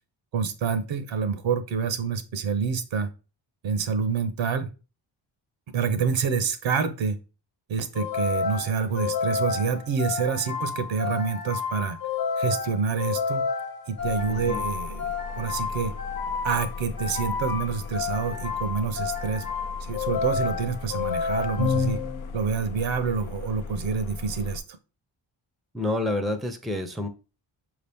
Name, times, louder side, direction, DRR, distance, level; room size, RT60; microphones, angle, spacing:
voice 1, 0.3-3.1 3.6-4.7 5.7-7.2 7.7-12.0 12.4-13.4 13.9-15.9 16.4-19.5 19.8-22.0 22.3-24.6, right 6 dB, 70° right, 10 dB, 0.7 m, -27 dB
sound 1, 7.9-22.5, left 5 dB, 45° left, 1.1 m, -30 dB
sound 2, 14.0-24.6, left 4 dB, 80° left, 0.6 m, -38 dB
voice 2, 14.3-14.6 25.7-27.1, left 1 dB, ahead, 8 dB, 0.5 m, -28 dB
4.8 x 2.9 x 3.4 m, 0.32 s
cardioid pair, 70°, 47 cm